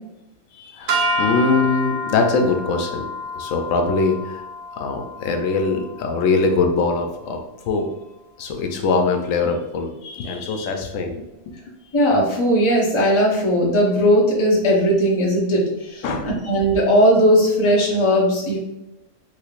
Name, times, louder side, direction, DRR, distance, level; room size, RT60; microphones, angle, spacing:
voice 1, 0.5-3.1 3.3-4.4 4.8-7.9 8.4-11.2 16.0-16.3, left 4 dB, 80° left, 4 dB, 0.9 m, -22 dB
sound 1, 0.9-7.2, equal, 60° right, 0.5 m, -29 dB
voice 2, 11.9-18.6, equal, 25° left, -4 dB, 0.7 m, -18 dB
3.3 x 3.1 x 2.4 m, 0.91 s
omnidirectional pair, 1.4 m